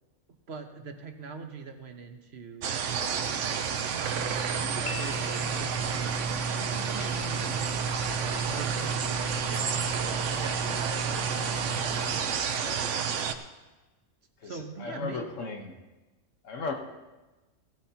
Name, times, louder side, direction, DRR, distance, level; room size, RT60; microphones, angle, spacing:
voice 1, 0.5-4.2 4.7-7.7 8.1-9.8 10.3-11.9 14.4-15.3, right 5 dB, 60° right, 5 dB, 1.3 m, -43 dB
sound 1, 2.6-13.3, right 7 dB, 80° right, 1.1 m, -30 dB
sound 2, 4.1-12.2, equal, 15° right, 0.7 m, -37 dB
Piano, 4.9-6.0, left 4 dB, 60° left, 1.0 m, -41 dB
voice 2, 12.4-12.8 14.4-15.7 16.4-16.7, left 4 dB, 85° left, 3 dB, 1.5 m, -36 dB
17.5 x 12.5 x 2.9 m, 1.1 s
omnidirectional pair, 1.3 m